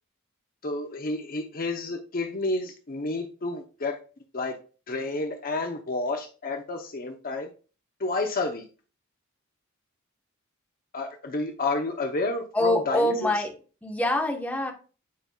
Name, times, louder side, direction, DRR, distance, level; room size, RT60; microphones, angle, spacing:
voice 1, 0.6-4.0 4.3-4.6 4.9-7.5 8.0-8.7 10.9-13.3, left 2 dB, 45° left, 0.8 m, -30 dB
voice 2, 12.5-13.5 13.8-14.7, left 1 dB, 5° left, 1.1 m, -25 dB
9.4 x 5.3 x 2.3 m
head